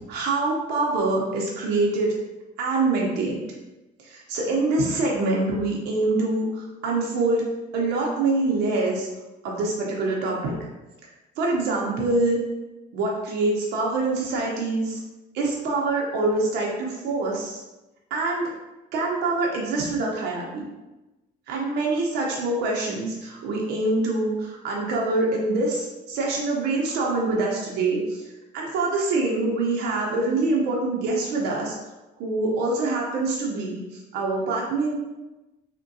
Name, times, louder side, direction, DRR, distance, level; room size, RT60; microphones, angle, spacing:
voice 1, 0.1-2.2 2.6-3.4 4.0-7.4 7.7-9.1 9.4-10.5 11.4-12.4 12.9-15.0 15.3-17.6 18.1-18.5 18.9-20.7 21.5-31.8 32.2-34.9, right 2 dB, 85° right, -2 dB, 0.7 m, -25 dB
3.5 x 2.2 x 2.6 m, 1.0 s
cardioid pair, 110°, 17 cm